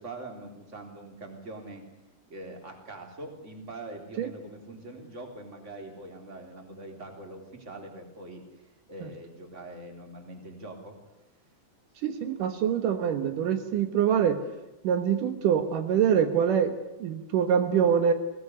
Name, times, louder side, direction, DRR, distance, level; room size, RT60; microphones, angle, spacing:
voice 1, 0.0-1.8 2.3-8.4 8.9-11.0, right 2 dB, 20° right, 3 dB, 3.8 m, -43 dB
voice 2, 12.0-14.4 14.8-16.7 17.0-18.1, right 8 dB, 75° right, 8 dB, 2.9 m, -24 dB
21.5 x 18.5 x 9.7 m, 0.97 s
omnidirectional pair, 3.8 m